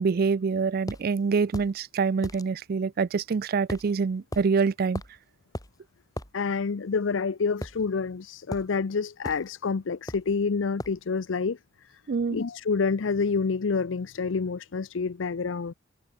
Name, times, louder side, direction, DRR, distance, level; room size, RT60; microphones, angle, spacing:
voice 1, 0.0-5.0 12.1-12.4, right 5 dB, 50° right, 0.4 m, -25 dB
sound 1, 0.9-1.0 1.5-1.7 2.2-2.4 3.7-3.9 4.3-4.5 4.9-5.2 5.5-5.7 6.2-6.3 7.6-8.2 8.5-8.7 9.2-9.5 10.1-10.3 10.8-11.0, left 1 dB, 20° left, 4.2 m, -37 dB
voice 2, 6.3-11.6 12.3-15.7, left 5 dB, 70° left, 0.5 m, -28 dB
head